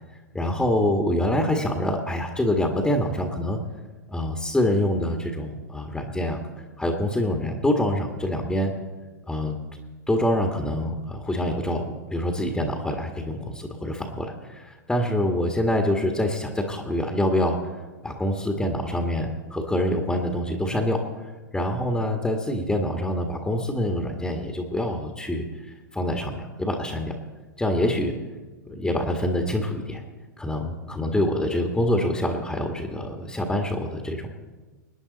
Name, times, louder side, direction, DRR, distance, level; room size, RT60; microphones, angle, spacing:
voice 1, 0.3-3.6 4.1-6.4 6.8-8.7 9.3-9.6 10.1-17.6 18.0-21.0 21.5-25.4 25.9-27.1 27.6-28.1 28.7-30.0 30.4-34.3, left 1 dB, 5° left, 2 dB, 1.7 m, -25 dB
25.5 x 10.0 x 4.1 m, 1.3 s
figure-of-eight pair, 105°, 10 cm